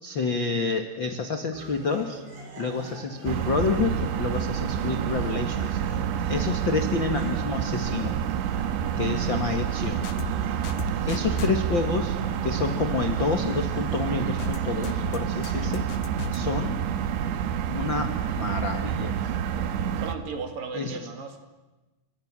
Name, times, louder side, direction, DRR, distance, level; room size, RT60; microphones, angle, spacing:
voice 1, 0.0-2.2 2.6-5.8 6.3-8.1 9.0-10.0 11.1-15.8 16.3-16.8 17.7-19.2 20.7-21.1, left 4 dB, 80° left, 6 dB, 1.0 m, -28 dB
sound 1, 1.5-15.7, right 3 dB, 70° right, 8.7 m, -45 dB
sound 2, 3.3-20.2, right 9 dB, 90° right, 3.4 m, -28 dB
voice 2, 6.0-6.5 8.6-8.9 10.5-10.9 19.1-19.7 20.0-21.4, right 5 dB, 55° right, 6 dB, 3.6 m, -38 dB
sound 3, 10.0-10.3 10.6-11.5 14.4-14.6 14.8-15.2 15.4-16.4, left 8 dB, 65° left, 2.5 m, -35 dB
29.5 x 26.0 x 7.5 m, 1.1 s
omnidirectional pair, 5.0 m